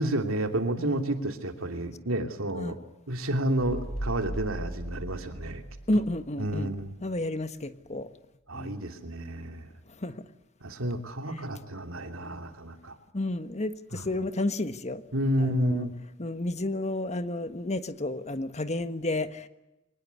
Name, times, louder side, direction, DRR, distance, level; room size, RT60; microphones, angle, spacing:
voice 1, 0.0-2.7 3.1-5.6 5.9-6.0 6.4-6.9 8.5-9.7 10.6-13.0 13.9-14.1 15.1-15.9, right 1 dB, 85° right, 6 dB, 2.9 m, -30 dB
voice 2, 0.8-1.3 2.6-2.7 5.9-6.7 7.0-8.1 8.5-8.8 10.0-10.1 13.1-15.0 15.4-15.8 16.2-19.5, left 1 dB, 35° left, 11 dB, 1.5 m, -31 dB
sound 1, 3.6-6.9, right 1 dB, 75° left, 4.2 m, -38 dB
24.5 x 20.0 x 8.3 m, 0.94 s
head